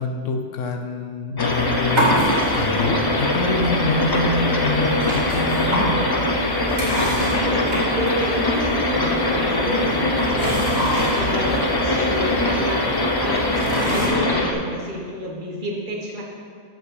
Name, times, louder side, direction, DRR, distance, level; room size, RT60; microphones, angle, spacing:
voice 1, 0.0-6.0 11.1-11.3, left 2 dB, 70° left, 5 dB, 1.1 m, -26 dB
sound 1, 1.4-14.5, left 2 dB, 35° left, 0.4 m, -22 dB
sound 2, 1.4-14.1, equal, 80° right, 2.6 m, -28 dB
voice 2, 7.4-10.6 11.1-12.8 13.2-16.2, equal, 40° right, -2 dB, 1.4 m, -29 dB
7.6 x 5.3 x 6.3 m, 2.1 s
omnidirectional pair, 1.4 m